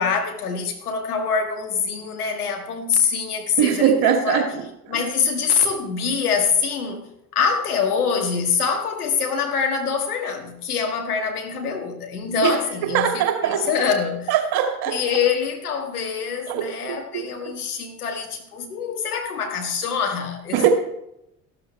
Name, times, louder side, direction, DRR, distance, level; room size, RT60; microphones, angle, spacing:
voice 1, 0.0-4.5 4.9-7.1 7.3-14.3 14.9-20.7, left 6 dB, 80° left, 1.9 m, -24 dB
voice 2, 3.6-4.5 12.4-12.6 12.9-13.6 14.3-15.0 16.5-16.7 17.1-17.2 20.5-20.7, right 9 dB, 55° right, 2.4 m, -20 dB
14.0 x 12.5 x 3.3 m
figure-of-eight pair, 60°, 44 cm